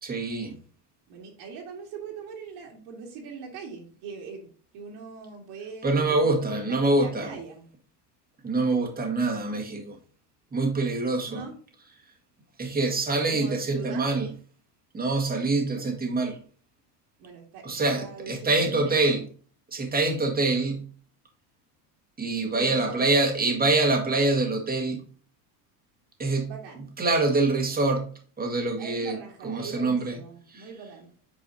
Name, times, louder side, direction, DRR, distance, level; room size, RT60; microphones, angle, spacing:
voice 1, 0.0-0.5 5.8-7.3 8.4-10.0 10.5-11.4 12.6-14.3 14.9-16.4 17.6-19.2 19.7-20.8 22.2-25.0 26.2-26.5 27.0-28.1 28.4-29.2 29.4-30.2 30.5-30.7, right 2 dB, 20° right, 1.7 m, -25 dB
voice 2, 1.1-7.7 11.2-11.5 13.2-14.1 17.2-18.9 22.4-23.0 26.4-26.9 28.8-31.1, right 5 dB, 65° right, 2.4 m, -41 dB
8.3 x 4.9 x 2.7 m
supercardioid pair, 120°, 47 cm